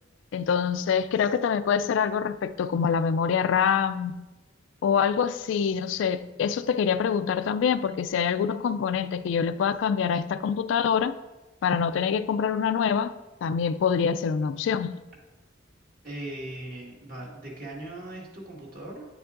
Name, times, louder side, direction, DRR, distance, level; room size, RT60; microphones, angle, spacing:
voice 1, 0.3-4.3 4.8-11.2 11.6-13.1 13.4-15.0, left 7 dB, 70° left, 0.3 m, -25 dB
voice 2, 16.0-19.1, right 1 dB, 50° right, 1.9 m, -39 dB
8.8 x 7.0 x 2.5 m
head